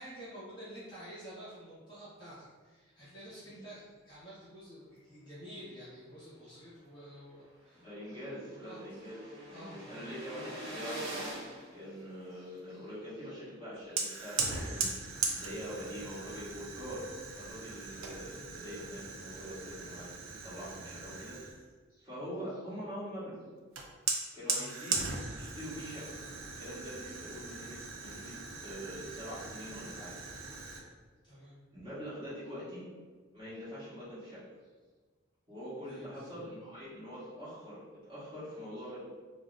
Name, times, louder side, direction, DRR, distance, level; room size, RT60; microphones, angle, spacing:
voice 1, 0.0-7.9 8.5-8.9 9.5-10.1 24.5-24.7 31.2-31.5 35.8-36.4, equal, 20° left, -10 dB, 0.9 m, -49 dB
sound 1, 7.0-7.1 7.4-7.5 7.7-12.6, right 1 dB, 65° right, 1.1 m, -45 dB
voice 2, 7.7-11.4 11.7-20.1 20.4-21.5 21.9-23.4 24.3-30.1 31.7-32.9 33.3-34.4 35.5-39.0, equal, 25° right, -12 dB, 1.3 m, -44 dB
Fire, 14.0-21.6 23.8-30.8, right 4 dB, 90° right, 0.5 m, -39 dB
3.6 x 2.1 x 2.5 m, 1.4 s
head